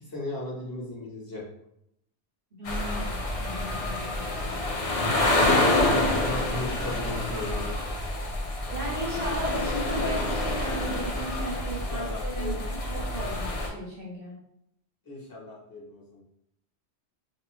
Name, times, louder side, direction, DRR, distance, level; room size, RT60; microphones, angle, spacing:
voice 1, 0.1-1.4 5.4-7.7 11.7-12.6 15.1-16.2, left 2 dB, 20° left, -5 dB, 0.8 m, -36 dB
voice 2, 2.5-4.2 5.4-6.4 8.7-14.3, right 1 dB, 60° right, -4 dB, 0.9 m, -35 dB
sound 1, 2.6-13.7, left 2 dB, 65° left, 0.3 m, -27 dB
2.6 x 2.2 x 3.0 m, 0.77 s
omnidirectional pair, 1.1 m